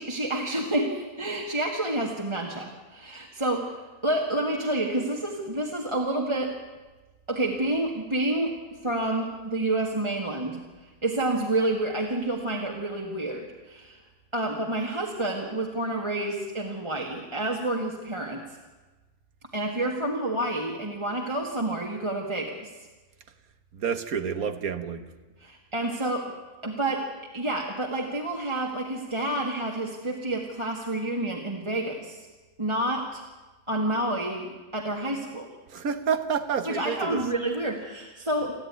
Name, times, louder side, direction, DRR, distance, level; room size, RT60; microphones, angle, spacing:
voice 1, 0.0-6.6 7.3-8.5 8.8-14.0 14.3-18.4 19.5-22.7 25.4-26.3 26.6-27.1 27.3-32.3 32.6-33.2 33.7-35.5 36.7-38.5, right 1 dB, 20° right, -1 dB, 1.7 m, -29 dB
voice 2, 23.7-25.1 35.7-37.2, right 7 dB, 70° right, 10 dB, 1.6 m, -29 dB
28.5 x 10.5 x 9.5 m, 1.2 s
omnidirectional pair, 1.6 m